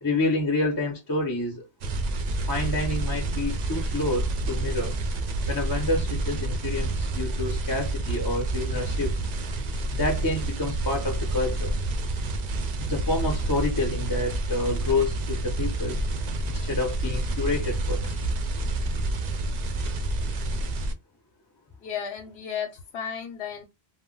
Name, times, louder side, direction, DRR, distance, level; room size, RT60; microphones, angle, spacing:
voice 1, 0.0-1.6 2.5-4.9 5.5-9.1 9.9-11.7 12.9-16.0 16.5-18.1, left 2 dB, 25° left, 0.5 m, -28 dB
sound 1, 1.8-20.9, right 2 dB, 55° right, 0.5 m, -28 dB
voice 2, 21.8-23.6, left 8 dB, 85° left, 0.8 m, -34 dB
2.1 x 2.0 x 3.7 m
omnidirectional pair, 1.1 m